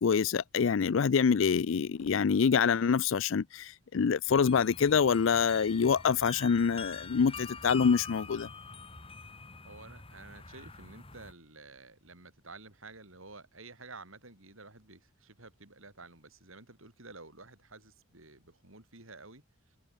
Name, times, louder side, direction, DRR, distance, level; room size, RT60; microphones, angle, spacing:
voice 1, 0.0-8.5, left 6 dB, 65° left, 0.4 m, -26 dB
sound 1, 4.3-11.3, left 4 dB, 25° left, 3.3 m, -45 dB
voice 2, 9.6-19.8, right 3 dB, 70° right, 5.9 m, -51 dB
head